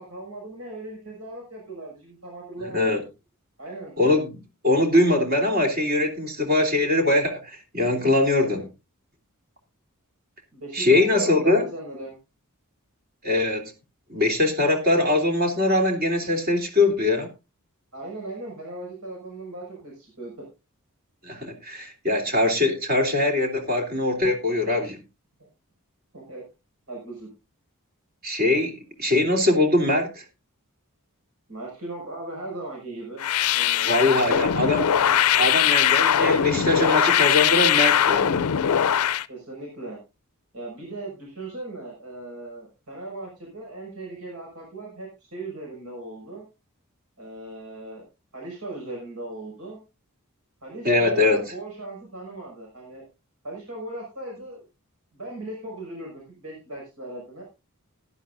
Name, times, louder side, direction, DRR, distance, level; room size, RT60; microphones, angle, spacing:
voice 1, 0.0-3.0 3.6-3.9 8.6-8.7 10.5-12.2 17.9-20.5 26.1-26.4 26.9-27.3 31.5-33.2 33.5-34.3 39.3-40.0 40.5-46.4 47.2-48.0 48.3-49.8 50.6-53.0 53.4-54.6 55.1-57.4, right 2 dB, 80° right, -1 dB, 5.9 m, -38 dB
voice 2, 2.6-3.0 4.0-8.7 10.7-11.6 13.2-13.7 14.1-17.3 21.2-25.0 28.2-30.2 33.8-38.4 50.8-51.4, left 2 dB, 45° right, 4 dB, 3.3 m, -22 dB
sound 1, 33.2-39.3, left 9 dB, 85° left, 0.5 m, -21 dB
17.5 x 11.0 x 2.6 m, 0.27 s
head